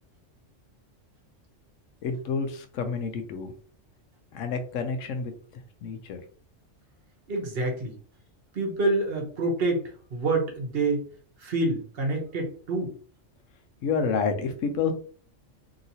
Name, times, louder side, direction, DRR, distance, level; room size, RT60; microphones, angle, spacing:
voice 1, 2.0-3.5 4.3-5.3 5.8-6.2 13.8-14.9, left 5 dB, 90° left, 7 dB, 1.0 m, -29 dB
voice 2, 7.3-7.9 8.5-9.8 10.1-11.0 11.4-12.9, right 2 dB, 55° right, 1 dB, 1.1 m, -27 dB
2.9 x 2.9 x 2.7 m, 0.43 s
omnidirectional pair, 1.3 m